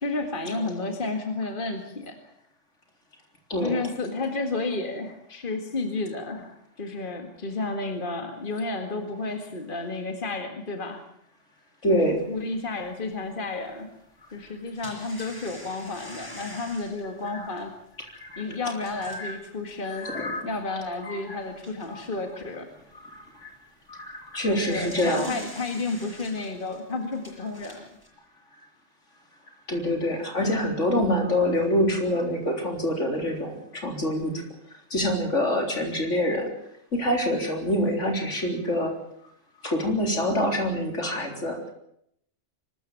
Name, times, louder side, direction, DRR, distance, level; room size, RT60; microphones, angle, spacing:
voice 1, 0.0-2.3 3.6-11.0 11.9-13.9 14.3-17.7 18.4-20.1 20.5-22.7 24.4-27.9 30.4-30.7, left 3 dB, 45° left, 5 dB, 2.1 m, -32 dB
voice 2, 11.8-12.2 17.3-17.4 18.2-18.4 18.9-19.3 19.9-20.5 21.0-21.4 21.9-22.0 23.0-23.5 23.9-25.4 29.7-34.4 34.9-36.5 36.9-38.9 39.6-41.6, equal, 75° left, 3 dB, 4.2 m, -26 dB
sound 1, 12.2-12.3 12.8-12.9 14.4-19.4 20.0-20.1 20.5-20.6 21.3-22.1 24.3-28.1, equal, 15° left, 6.8 m, -45 dB
23.5 x 13.5 x 9.3 m, 0.74 s
omnidirectional pair, 1.3 m